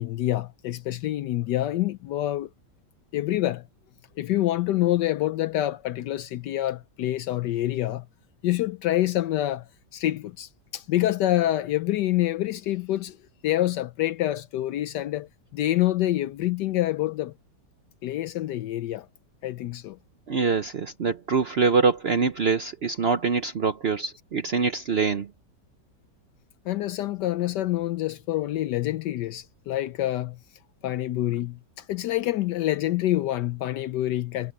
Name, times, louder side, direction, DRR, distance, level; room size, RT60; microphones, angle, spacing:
voice 1, 0.0-2.5 3.1-3.6 4.2-8.1 8.4-9.7 9.9-13.2 13.4-17.3 18.0-19.1 19.4-20.0 26.7-30.4 30.8-34.5, left 14 dB, 75° left, 1.2 m, -26 dB
voice 2, 20.3-25.3, right 5 dB, 55° right, 0.7 m, -24 dB
omnidirectional pair, 1.9 m